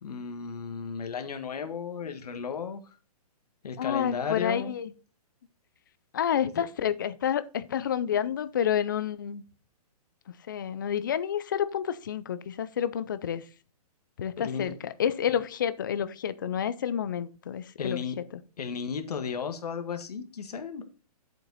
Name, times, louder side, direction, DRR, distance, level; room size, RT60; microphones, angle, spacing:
voice 1, 0.0-2.8 3.6-4.7 6.4-6.6 14.4-14.7 17.8-18.2 18.6-20.8, left 6 dB, 75° left, 1.8 m, -34 dB
voice 2, 3.8-4.9 6.1-9.4 10.5-13.5 14.2-18.0 18.3-18.4, left 9 dB, 30° left, 0.5 m, -29 dB
8.1 x 7.5 x 4.0 m
hypercardioid pair, 180°, 20 cm